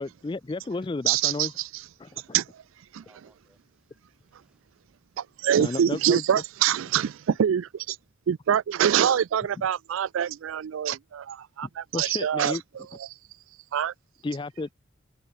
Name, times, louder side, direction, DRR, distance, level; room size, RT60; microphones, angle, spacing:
voice 1, 0.0-1.5 2.0-2.1 5.6-6.2 11.6-12.6 14.2-14.7, left 3 dB, 25° left, 0.3 m, -32 dB
voice 2, 1.1-1.8 2.3-2.5 2.9-3.0 5.2-8.0 8.3-12.6 13.0-13.1 13.7-13.9, right 9 dB, 85° right, 0.4 m, -25 dB
voice 3, 2.0-2.3 2.9-4.8, right 1 dB, 5° right, 6.4 m, -66 dB
head